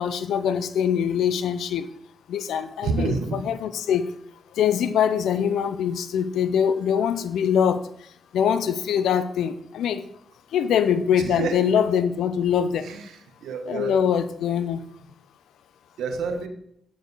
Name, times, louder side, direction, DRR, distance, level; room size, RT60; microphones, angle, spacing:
voice 1, 0.0-1.9 2.3-4.1 4.6-7.8 8.3-10.0 10.5-12.9 13.7-14.8, left 8 dB, 80° left, 13 dB, 0.4 m, -23 dB
voice 2, 2.8-3.4 11.2-11.6 12.8-13.9 16.0-16.5, right 5 dB, 80° right, 5 dB, 1.1 m, -28 dB
9.2 x 4.7 x 4.0 m, 0.70 s
supercardioid pair, 45°, 0 cm